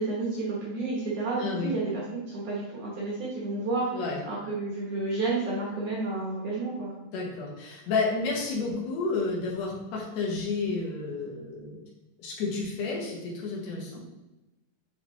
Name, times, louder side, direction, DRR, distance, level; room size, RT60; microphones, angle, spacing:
voice 1, 0.0-3.9 4.2-6.9, right 3 dB, 65° right, -5 dB, 1.6 m, -31 dB
voice 2, 1.4-1.7 3.9-4.2 7.1-11.8 12.2-14.0, left 3 dB, 60° left, -2 dB, 1.9 m, -31 dB
8.1 x 3.7 x 3.1 m, 1.0 s
omnidirectional pair, 4.5 m